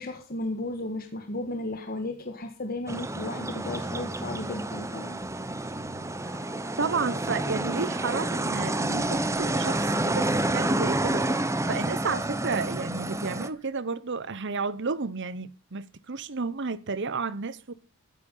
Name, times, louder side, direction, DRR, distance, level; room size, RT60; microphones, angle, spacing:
voice 1, 0.0-5.2, left 2 dB, 40° left, 1.6 m, -34 dB
sound 1, 2.9-13.5, right 1 dB, 15° right, 0.8 m, -29 dB
sound 2, 5.1-13.0 13.5-13.7, right 2 dB, 70° right, 7.0 m, -48 dB
voice 2, 6.8-11.3 11.7-17.7, right 4 dB, 55° right, 0.9 m, -32 dB
15.0 x 10.5 x 5.5 m
head